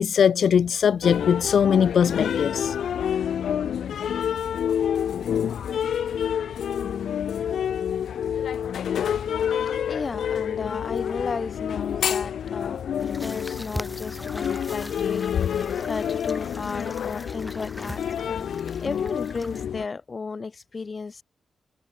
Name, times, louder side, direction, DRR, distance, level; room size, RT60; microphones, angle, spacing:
voice 1, 0.0-2.7, left 7 dB, 65° left, 1.2 m, -20 dB
sound 1, 1.0-19.8, left 8 dB, 90° left, 1.1 m, -28 dB
voice 2, 9.9-18.5 18.8-21.2, left 4 dB, 35° left, 7.3 m, -34 dB
sound 2, 13.0-19.6, left 1 dB, 5° left, 7.4 m, -40 dB
wide cardioid pair, 145°, 0 cm